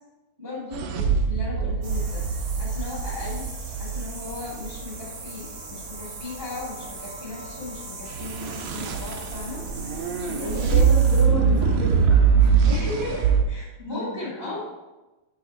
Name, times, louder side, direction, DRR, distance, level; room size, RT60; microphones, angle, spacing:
voice 1, 0.4-3.5 3.8-9.6 9.9-10.8 12.6-14.6, left 2 dB, 25° right, -9 dB, 0.5 m, -36 dB
sound 1, 0.7-4.8 8.1-13.4, right 6 dB, 85° right, 1.6 m, -22 dB
sound 2, 1.8-11.2, right 2 dB, 60° right, 2.1 m, -39 dB
voice 2, 10.4-12.5 12.8-12.9 13.8-14.5, left 2 dB, 80° left, -5 dB, 1.2 m, -32 dB
7.8 x 3.0 x 4.1 m, 1.1 s
omnidirectional pair, 3.9 m